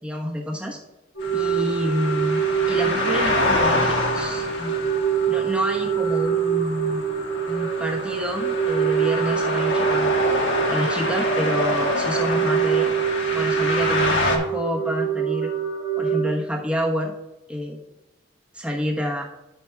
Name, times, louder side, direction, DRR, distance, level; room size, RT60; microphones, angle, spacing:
voice 1, 0.0-0.8 1.3-4.7 5.3-7.0 7.5-10.2 10.7-12.9 13.3-15.5 16.0-17.1 17.5-17.8 18.5-19.2, equal, 5° right, 0 dB, 1.0 m, -28 dB
sound 1, 1.2-16.3, right 8 dB, 85° left, 2.0 m, -25 dB
sound 2, 1.2-14.4, left 2 dB, 65° left, 1.3 m, -26 dB
12.0 x 6.0 x 2.3 m, 1.0 s
head